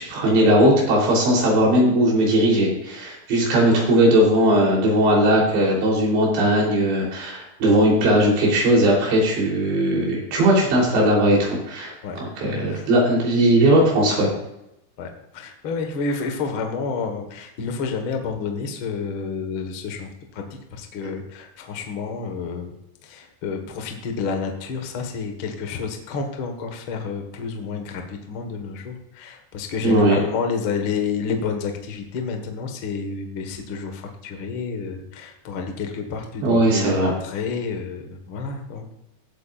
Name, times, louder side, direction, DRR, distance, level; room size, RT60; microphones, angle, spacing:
voice 1, 0.0-11.4 11.7-14.3 29.8-30.2 36.4-37.1, right 1 dB, 85° right, -3 dB, 5.8 m, -18 dB
voice 2, 12.5-12.9 15.0-20.4 20.7-22.7 23.0-38.9, left 5 dB, 70° left, 4 dB, 1.2 m, -29 dB
17.0 x 8.5 x 2.5 m, 0.87 s
omnidirectional pair, 4.9 m